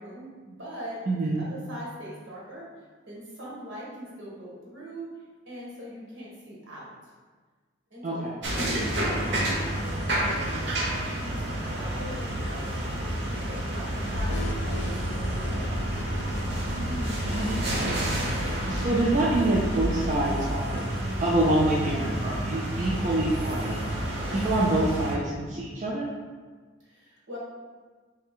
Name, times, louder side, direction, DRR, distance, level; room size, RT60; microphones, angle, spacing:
voice 1, 0.0-2.7 3.1-5.1 5.4-6.9 7.9-8.3 8.6-9.7 10.0-13.1 13.5-15.7 26.8-27.4, equal, 80° right, -6 dB, 1.5 m, -42 dB
voice 2, 1.1-1.4 8.0-8.3 16.6-18.1 18.7-20.9 21.2-23.8 24.3-26.1, right 1 dB, 40° right, -4 dB, 0.4 m, -26 dB
sound 1, 8.4-25.1, right 1 dB, 60° right, 0.9 m, -30 dB
sound 2, 14.1-20.1, left 1 dB, 60° left, 0.4 m, -35 dB
3.5 x 3.2 x 3.6 m, 1.4 s
head